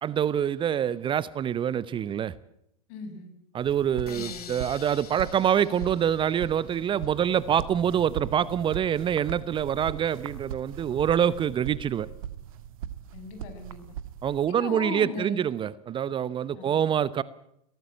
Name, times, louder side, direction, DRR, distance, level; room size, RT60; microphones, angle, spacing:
voice 1, 0.0-2.3 3.5-12.1 14.2-17.2, right 9 dB, 25° right, 0.8 m, -26 dB
voice 2, 2.9-3.3 4.1-4.5 13.1-13.8 14.5-15.4 16.5-16.8, left 4 dB, 55° left, 6.4 m, -38 dB
sound 1, 3.6-14.5, right 10 dB, 65° right, 1.6 m, -40 dB
sound 2, 4.1-7.1, left 8 dB, 75° left, 2.4 m, -46 dB
23.0 x 18.0 x 9.0 m
figure-of-eight pair, 90°, 19 cm